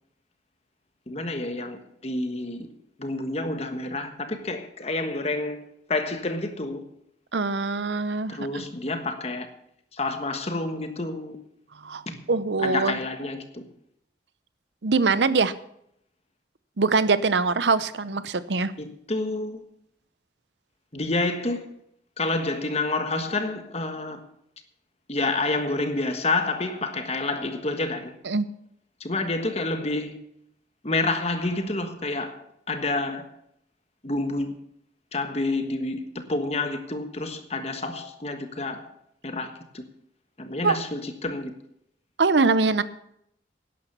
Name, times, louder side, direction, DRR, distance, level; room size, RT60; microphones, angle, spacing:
voice 1, 1.1-2.7 3.0-6.8 8.3-9.5 9.9-11.4 12.1-12.2 12.6-13.6 18.8-19.6 20.9-21.7 22.2-24.2 25.1-28.1 29.0-30.2 30.8-32.3 32.7-33.2 34.0-34.6 35.1-38.9 39.2-39.8 40.4-41.5, left 2 dB, 35° left, 1.4 m, -29 dB
voice 2, 7.3-8.4 11.8-12.0 12.3-12.9 14.8-15.5 16.8-18.7 28.3-28.5 40.6-40.8 42.2-42.8, right 4 dB, 80° right, 0.8 m, -22 dB
11.5 x 10.0 x 6.8 m
head